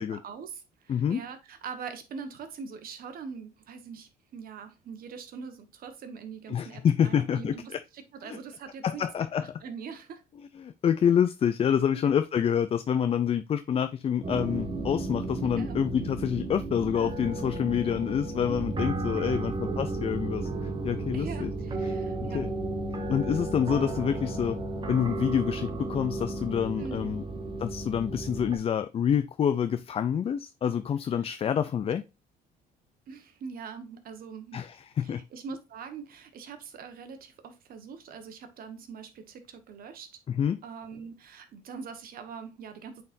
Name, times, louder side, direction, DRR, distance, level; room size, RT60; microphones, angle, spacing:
voice 1, 0.0-9.0 9.4-10.2 11.9-12.2 15.6-15.8 19.2-19.5 21.1-22.5 26.8-27.3 33.1-34.6 35.0-40.1 40.6-43.0, right 5 dB, 60° right, 1.4 m, -43 dB
voice 2, 0.9-1.2 6.5-7.5 8.2-8.4 8.8-9.6 10.6-21.5 21.8-22.5 23.1-24.6 24.9-27.2 27.6-32.0 34.5-35.2 40.3-40.6, left 8 dB, 35° left, 0.4 m, -27 dB
sound 1, 14.2-28.6, right 2 dB, 30° right, 1.3 m, -33 dB
8.7 x 4.3 x 2.6 m
cardioid pair, 110°, 17 cm